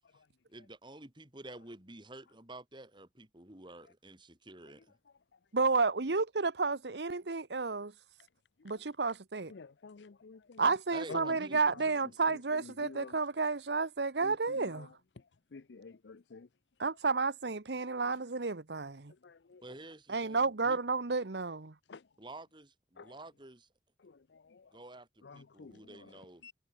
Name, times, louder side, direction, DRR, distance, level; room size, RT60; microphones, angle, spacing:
voice 1, 0.5-5.0 10.9-12.3 19.6-20.8 22.2-23.7 24.7-26.4, right 2 dB, 25° right, 3.1 m, -50 dB
voice 2, 5.5-7.9 8.6-9.5 10.6-14.9 16.8-19.1 20.1-21.7, right 4 dB, 75° right, 1.1 m, -31 dB
voice 3, 9.5-10.6 11.1-11.4 11.7-11.9 12.3-13.1 14.2-14.9 15.5-16.5 19.2-19.6 21.9-22.0 23.0-23.1 24.0-24.7 25.2-26.1 26.4-26.5, left 4 dB, 85° left, 0.6 m, -50 dB
head